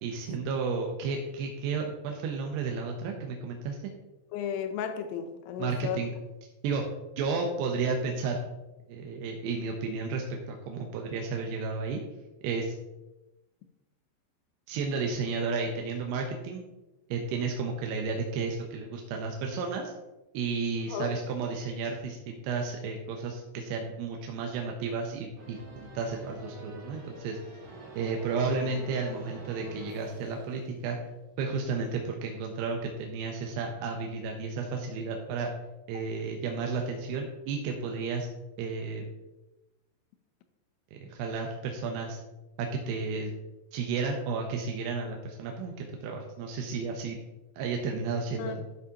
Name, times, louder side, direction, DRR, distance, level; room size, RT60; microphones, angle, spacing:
voice 1, 0.0-3.8 5.6-6.1 6.6-6.9 7.2-8.4 8.9-12.0 12.4-12.8 14.7-16.6 17.1-19.9 20.3-27.4 28.0-31.0 31.4-35.5 35.9-38.3 38.6-39.1 40.9-42.2 42.6-43.3 43.7-47.2 47.6-48.6, right 4 dB, 75° right, 2 dB, 2.6 m, -32 dB
voice 2, 4.3-6.0 20.9-21.1 48.4-48.5, left 8 dB, 80° left, 8 dB, 2.5 m, -34 dB
sound 1, 25.4-31.0, right 2 dB, 55° right, 4.3 m, -46 dB
12.5 x 7.4 x 2.9 m, 1.0 s
omnidirectional pair, 5.3 m